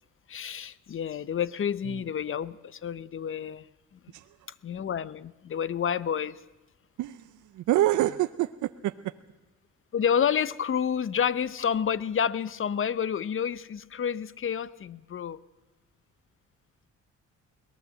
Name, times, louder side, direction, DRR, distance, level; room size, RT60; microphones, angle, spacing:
voice 1, 0.3-3.7 4.0-4.1 4.6-6.4 9.9-15.4, left 8 dB, 45° left, 18 dB, 0.8 m, -29 dB
voice 2, 7.0-8.9, right 14 dB, 80° right, 12 dB, 0.6 m, -27 dB
21.5 x 18.5 x 7.8 m, 1.1 s
cardioid pair, 90°, 30 cm